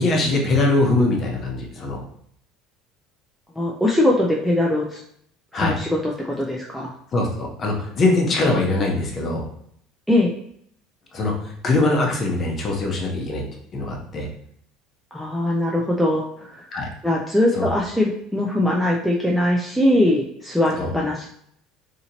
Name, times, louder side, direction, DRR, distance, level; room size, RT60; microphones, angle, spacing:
voice 1, 0.0-2.0 5.5-5.8 7.1-9.4 11.1-13.4 13.7-14.3 16.7-16.9 17.5-17.7 20.8-20.9, left 2 dB, 25° left, 0 dB, 0.8 m, -22 dB
voice 2, 3.6-5.0 5.5-6.9 10.1-10.3 15.1-16.7 17.0-21.3, left 1 dB, ahead, -3 dB, 0.3 m, -21 dB
3.9 x 2.8 x 2.8 m, 0.68 s
cardioid pair, 160°, 0 cm